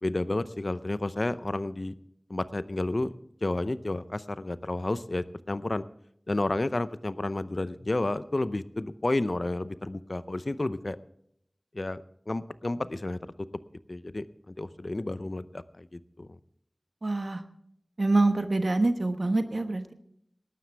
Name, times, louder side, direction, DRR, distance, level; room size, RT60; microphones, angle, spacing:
voice 1, 0.0-1.9 2.3-3.2 3.4-5.8 6.3-11.0 11.7-13.2 13.9-16.4, left 2 dB, 55° left, 14 dB, 0.6 m, -31 dB
voice 2, 17.0-17.4 18.0-19.9, right 2 dB, 70° right, 8 dB, 1.1 m, -25 dB
19.0 x 12.0 x 3.4 m, 0.71 s
wide cardioid pair, 45°, 0 cm